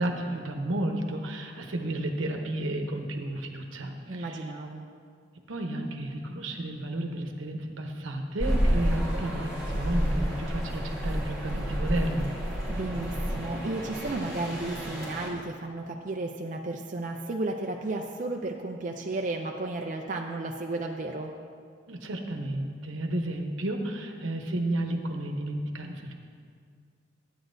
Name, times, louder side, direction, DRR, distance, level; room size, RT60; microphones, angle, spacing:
voice 1, 0.0-4.4 5.5-12.3 21.9-26.1, right 1 dB, 75° right, 3 dB, 0.9 m, -32 dB
voice 2, 4.1-4.9 12.7-21.3, right 2 dB, 40° right, 1 dB, 0.4 m, -33 dB
sound 1, 8.4-15.3, equal, 15° left, 1.2 m, -30 dB
13.0 x 9.0 x 2.6 m, 2.1 s
head